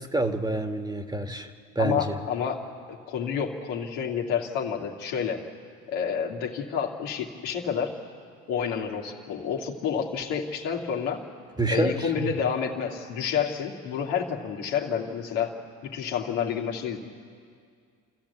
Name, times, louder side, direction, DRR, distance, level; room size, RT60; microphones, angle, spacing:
voice 1, 0.0-2.2 11.6-12.3, right 2 dB, 10° right, 6 dB, 1.7 m, -28 dB
voice 2, 1.8-5.4 5.9-7.9 8.5-11.2 11.7-15.5 15.8-17.0, left 7 dB, 80° left, -1 dB, 2.5 m, -29 dB
28.0 x 14.0 x 8.4 m, 2.2 s
supercardioid pair, 70°, 35 cm